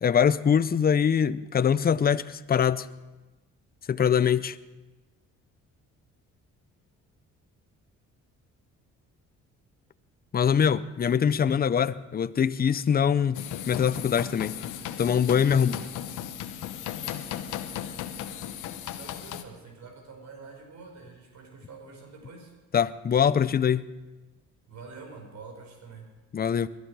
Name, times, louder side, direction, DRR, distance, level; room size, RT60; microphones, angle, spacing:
voice 1, 0.0-2.9 3.9-4.6 10.3-14.5 15.0-15.8 22.7-23.9 26.3-26.7, left 7 dB, 30° left, 0.6 m, -23 dB
sound 1, 13.3-19.4, left 10 dB, 90° left, 1.0 m, -36 dB
voice 2, 15.5-16.0 18.9-22.5 24.7-26.1, right 4 dB, 65° right, 4.8 m, -46 dB
22.0 x 12.0 x 4.8 m
cardioid pair, 90°, 30 cm